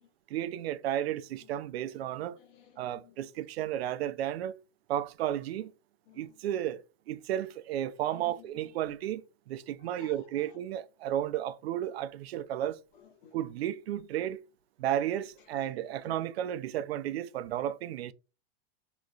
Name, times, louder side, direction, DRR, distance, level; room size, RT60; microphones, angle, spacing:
voice 1, 0.3-2.4 2.8-4.6 4.9-5.7 6.2-12.8 13.3-14.4 14.8-18.1, right 11 dB, 80° right, 0.5 m, -33 dB
voice 2, 2.4-3.1 6.1-6.3 8.1-8.7 9.6-10.6 13.0-13.3 15.6-15.7 16.0-16.2, left 9 dB, 55° left, 1.0 m, -55 dB
3.8 x 3.0 x 2.4 m
supercardioid pair, 170°, 31 cm